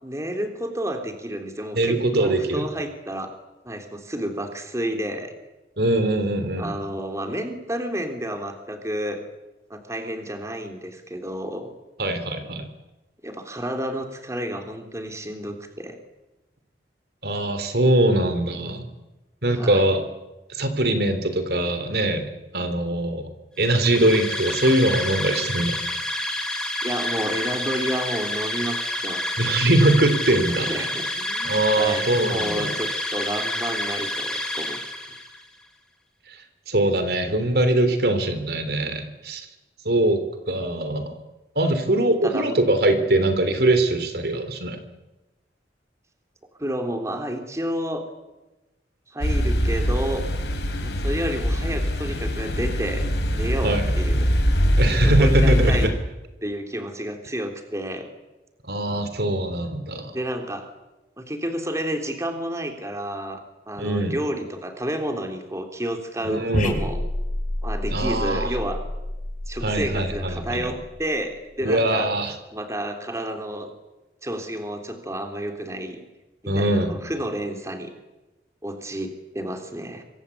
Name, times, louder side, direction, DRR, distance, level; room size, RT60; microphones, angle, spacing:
voice 1, 0.0-3.3 3.6-5.3 6.6-9.2 9.7-11.7 13.2-16.0 19.5-19.8 26.8-29.4 30.5-34.8 42.0-42.6 43.0-43.1 46.6-48.0 49.1-50.2 50.8-53.1 53.3-54.3 55.0-55.9 56.4-58.1 60.1-60.7 61.2-67.0 67.6-68.8 69.5-72.1 72.5-73.7 74.2-76.0 76.4-77.9 78.6-80.0, equal, 15° right, 5 dB, 3.5 m, -30 dB
voice 2, 1.7-2.6 5.8-6.7 12.0-12.7 17.2-18.9 19.4-20.0 20.6-22.3 22.5-23.3 23.6-25.8 29.4-30.7 31.4-32.7 36.7-39.5 39.8-40.2 40.5-41.2 41.5-44.8 53.6-53.9 54.8-55.9 58.6-60.1 63.8-64.1 66.2-66.8 67.9-68.6 69.6-70.7 71.6-72.3 76.5-76.9, right 1 dB, 60° right, 9 dB, 3.4 m, -22 dB
sound 1, 23.6-35.4, left 1 dB, 5° left, 3.9 m, -29 dB
sound 2, 49.2-55.9, equal, 70° left, 5.4 m, -22 dB
sound 3, 66.5-71.2, left 1 dB, 45° left, 5.2 m, -29 dB
26.5 x 25.0 x 8.5 m, 1.0 s
head